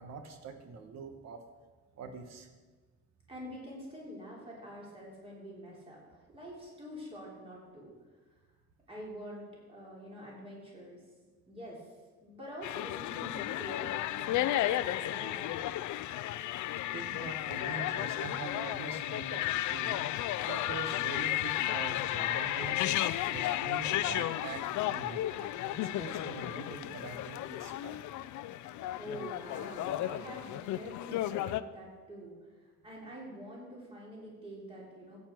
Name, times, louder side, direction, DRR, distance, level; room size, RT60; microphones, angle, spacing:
voice 1, 0.0-1.4 2.0-2.5 16.9-22.9 23.2-28.0 28.7-29.0, right 4 dB, 65° right, 7 dB, 1.4 m, -44 dB
voice 2, 3.3-7.9 8.9-11.0 11.5-11.9 12.2-15.7 29.0-32.4 32.8-35.2, equal, 20° right, -4 dB, 3.3 m, -46 dB
sound 1, 12.6-31.6, left 14 dB, 85° left, 0.5 m, -33 dB
15.5 x 8.5 x 4.5 m, 1.4 s
cardioid pair, 155°, 29 cm